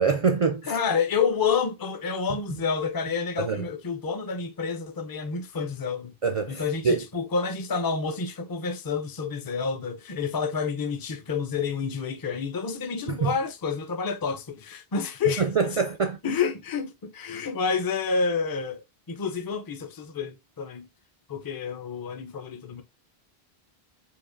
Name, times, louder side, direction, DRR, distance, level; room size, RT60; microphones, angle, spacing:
voice 1, 0.0-0.8 3.4-3.6 6.2-7.1 13.1-13.3 15.4-16.2, right 5 dB, 55° right, 0.4 m, -25 dB
voice 2, 0.7-6.1 6.5-15.5 16.2-20.9 21.3-22.8, left 5 dB, 30° left, 0.4 m, -29 dB
4.9 x 2.5 x 2.5 m
omnidirectional pair, 1.1 m